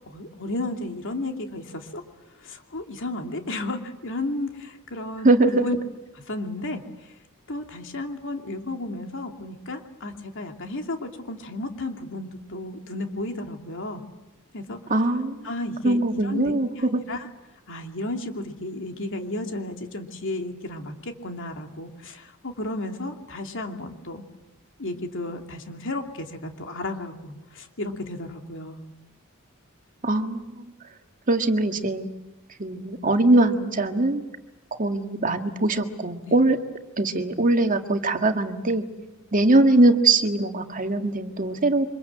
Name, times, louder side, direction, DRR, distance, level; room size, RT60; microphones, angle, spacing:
voice 1, 0.1-2.0 2.4-5.3 5.6-5.8 6.3-6.8 7.5-14.0 14.5-14.8 15.4-16.5 17.1-17.3 17.7-24.2 24.8-28.8 36.2-36.4, left 2 dB, 65° left, 4 dB, 2.8 m, -33 dB
voice 2, 5.2-5.7 14.9-15.4 15.8-17.0 30.0-30.7 31.3-32.1 32.6-34.2 34.7-36.6 37.0-38.8 39.3-41.9, right 2 dB, 40° right, 6 dB, 1.8 m, -21 dB
28.5 x 25.5 x 7.9 m, 1.0 s
head